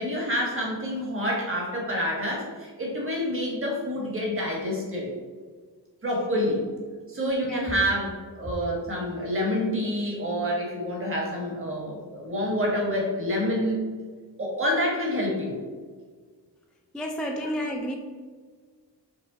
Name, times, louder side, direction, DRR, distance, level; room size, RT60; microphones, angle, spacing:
voice 1, 0.0-5.1 6.0-6.7 7.1-13.8 14.4-15.6 17.4-17.5, equal, 30° right, -2 dB, 1.4 m, -28 dB
voice 2, 7.2-7.6 16.9-18.0, equal, ahead, 1 dB, 0.3 m, -31 dB
5.4 x 2.1 x 3.9 m, 1.5 s
cardioid pair, 65°, 42 cm